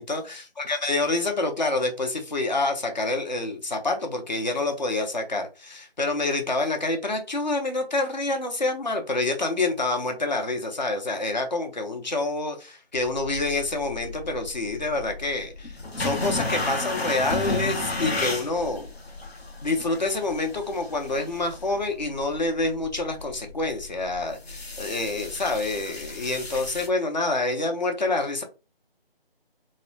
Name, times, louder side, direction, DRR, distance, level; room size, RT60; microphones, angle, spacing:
voice 1, 0.0-18.9 19.6-28.4, left 2 dB, 45° left, 4 dB, 0.6 m, -27 dB
sound 1, 13.0-26.9, left 2 dB, 75° left, 0.9 m, -34 dB
2.7 x 2.1 x 2.6 m, 0.31 s
figure-of-eight pair, 170°, 31 cm